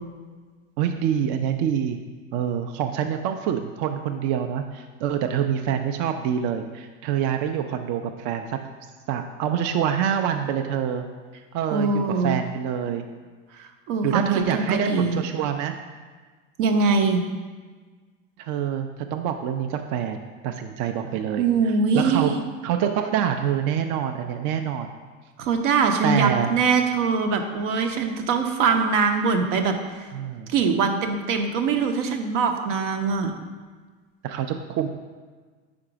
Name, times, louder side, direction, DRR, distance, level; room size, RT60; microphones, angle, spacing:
voice 1, 0.8-2.0 2.3-8.6 9.1-11.0 11.5-13.1 14.0-15.8 18.4-22.4 22.6-24.9 26.0-26.5 30.1-30.5 34.2-34.9, right 9 dB, 55° right, 6 dB, 0.4 m, -26 dB
voice 2, 11.7-12.4 13.6-14.3 14.5-15.2 16.6-17.2 21.4-22.4 25.4-30.0 30.5-33.3, right 5 dB, 80° right, 5 dB, 0.8 m, -22 dB
4.9 x 4.4 x 5.0 m, 1.4 s
supercardioid pair, 125°, 36 cm